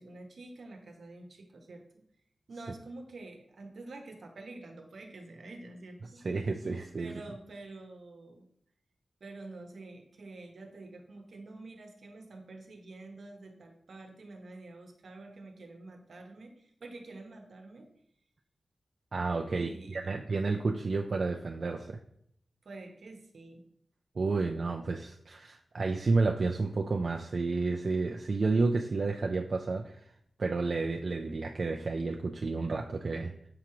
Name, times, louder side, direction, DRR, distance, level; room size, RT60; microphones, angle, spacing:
voice 1, 0.0-2.0 2.5-6.2 7.0-8.5 9.2-17.9 19.4-20.1 22.6-23.6, right 2 dB, 75° right, 3 dB, 0.9 m, -48 dB
voice 2, 6.2-7.2 19.1-22.0 24.2-30.0 30.4-33.3, right 3 dB, 55° right, 3 dB, 0.4 m, -31 dB
7.0 x 3.0 x 4.8 m, 0.71 s
wide cardioid pair, 105°, 0 cm